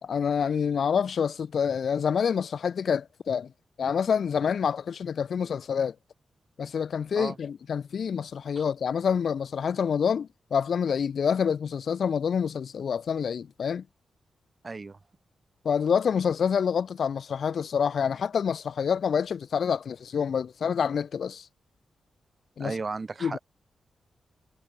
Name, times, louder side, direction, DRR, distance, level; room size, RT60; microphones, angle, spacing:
voice 1, 0.0-3.5 3.8-5.9 6.6-13.8 15.6-21.5 22.6-22.7 23.2-23.4, left 7 dB, 60° left, 0.9 m, -27 dB
voice 2, 14.6-15.0 22.6-23.4, right 4 dB, 30° right, 6.8 m, -34 dB
wide cardioid pair, 135°, 0 cm